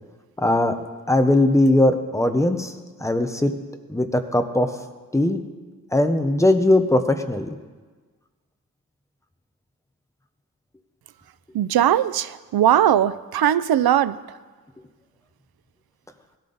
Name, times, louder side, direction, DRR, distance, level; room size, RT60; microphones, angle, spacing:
voice 1, 0.4-0.8 1.1-2.7 3.0-3.5 3.9-4.7 5.1-5.4 5.9-7.5, left 1 dB, 10° left, 7 dB, 0.7 m, -19 dB
voice 2, 11.5-14.2, right 11 dB, 90° right, 16 dB, 0.5 m, -19 dB
17.5 x 13.5 x 4.0 m, 1.4 s
wide cardioid pair, 150°, 36 cm